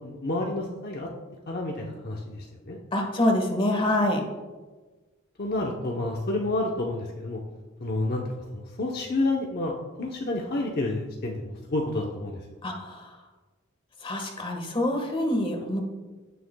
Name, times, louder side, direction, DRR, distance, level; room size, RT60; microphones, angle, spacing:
voice 1, 0.0-1.1 1.5-2.8 5.4-7.4 7.8-12.4, left 2 dB, 50° left, -1 dB, 0.9 m, -30 dB
voice 2, 2.9-4.2 12.6-13.2 14.0-15.8, left 1 dB, 25° left, 2 dB, 1.4 m, -26 dB
16.0 x 6.8 x 2.3 m, 1.3 s
head